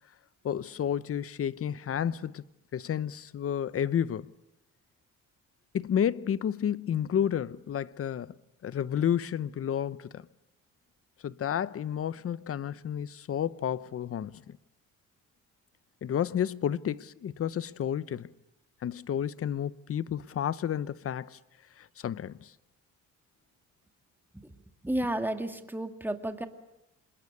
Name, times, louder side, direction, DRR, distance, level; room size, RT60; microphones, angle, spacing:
voice 1, 0.4-2.4 2.7-4.3 5.7-8.3 8.6-10.3 11.2-14.6 16.0-18.3 18.8-21.4 21.8-22.5, left 9 dB, 50° left, 0.9 m, -31 dB
voice 2, 24.8-26.5, right 1 dB, 5° right, 2.2 m, -32 dB
26.5 x 21.5 x 8.4 m
cardioid pair, 90°, 30 cm